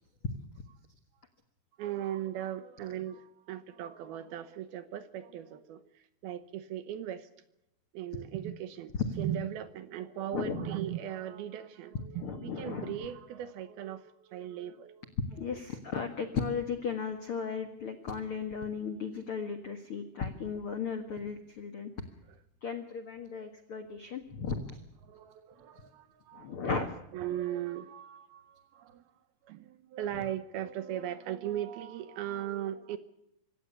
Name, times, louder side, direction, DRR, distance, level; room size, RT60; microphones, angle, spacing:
voice 1, 1.8-7.3 7.9-15.1 25.0-26.9 27.1-29.0 29.4-33.0, right 11 dB, 70° right, 12 dB, 2.5 m, -38 dB
voice 2, 10.3-10.7 12.2-12.9 15.3-21.9 22.6-24.8 26.3-26.9, left 6 dB, 90° left, 7 dB, 1.2 m, -36 dB
24.0 x 17.0 x 6.8 m, 0.82 s
omnidirectional pair, 5.2 m